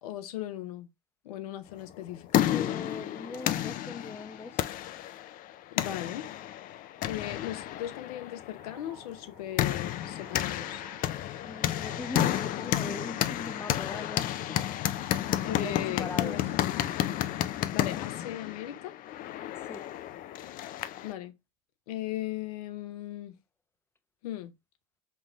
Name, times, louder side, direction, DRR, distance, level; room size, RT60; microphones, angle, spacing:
voice 1, 0.0-0.9 1.2-2.5 5.7-6.3 7.0-10.8 15.4-16.5 17.7-18.9 21.0-21.3 21.9-23.4 24.2-24.5, left 13 dB, 75° left, 0.8 m, -38 dB
sound 1, 1.9-21.1, left 13 dB, 45° left, 0.5 m, -31 dB
voice 2, 2.4-4.7 10.5-10.7 11.4-15.2 15.5-16.5 19.6-19.9, left 3 dB, 10° left, 0.7 m, -41 dB
sound 2, 8.6-15.6, right 6 dB, 65° right, 1.4 m, -56 dB
5.4 x 2.5 x 3.2 m
hypercardioid pair, 90°, 19 cm